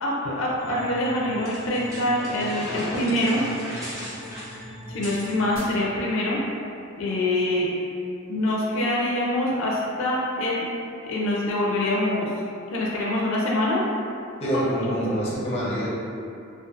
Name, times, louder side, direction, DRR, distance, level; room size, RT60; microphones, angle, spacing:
voice 1, 0.0-3.4 4.9-6.4 7.0-7.7 8.3-10.7 11.0-12.3 12.7-13.8, left 1 dB, 75° left, -4 dB, 0.4 m, -25 dB
sound 1, 0.6-5.6, equal, 85° right, 1.0 m, -42 dB
sound 2, 1.4-5.4, equal, 15° right, 0.7 m, -36 dB
voice 2, 14.4-15.9, equal, 30° left, -7 dB, 0.6 m, -26 dB
2.6 x 2.3 x 2.4 m, 2.6 s
head